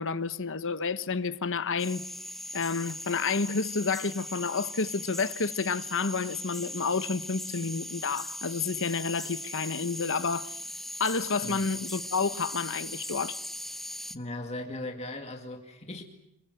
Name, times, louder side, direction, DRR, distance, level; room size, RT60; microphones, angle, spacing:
voice 1, 0.0-2.0 2.5-10.5 11.0-13.4, left 4 dB, 60° left, 1.2 m, -30 dB
sound 1, 1.8-14.2, left 1 dB, ahead, 1.0 m, -39 dB
voice 2, 14.1-16.0, left 1 dB, 30° left, 2.2 m, -38 dB
27.5 x 23.5 x 8.0 m
head